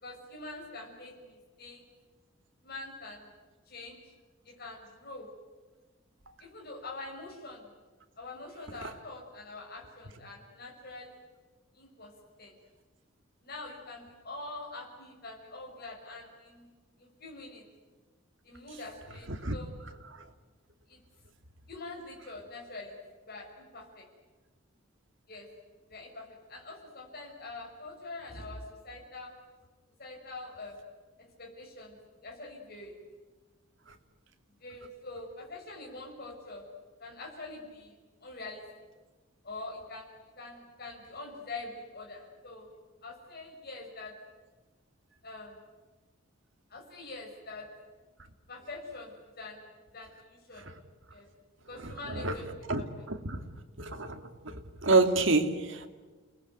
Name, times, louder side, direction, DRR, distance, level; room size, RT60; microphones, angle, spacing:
voice 1, 0.0-1.8 2.6-3.3 3.7-4.0 4.4-5.3 6.4-7.7 8.2-11.2 11.8-12.1 12.4-12.6 13.4-16.7 17.0-17.6 18.4-19.7 20.9-21.0 21.7-22.9 23.3-24.1 25.3-25.5 25.9-29.4 30.0-30.8 31.2-32.9 34.6-36.6 37.0-37.9 38.2-38.6 39.4-40.1 40.4-42.7 43.0-44.1 45.2-45.6 46.7-47.7 48.5-49.6 49.9-50.6 51.1-51.3 51.7-52.5 52.8-52.9, left 2 dB, 50° left, 0 dB, 6.3 m, -44 dB
voice 2, 51.8-52.3 52.7-52.8 53.1-53.4 53.8-54.2 54.4-55.9, right 3 dB, 65° right, 7 dB, 2.5 m, -28 dB
29.5 x 20.5 x 9.5 m, 1.3 s
head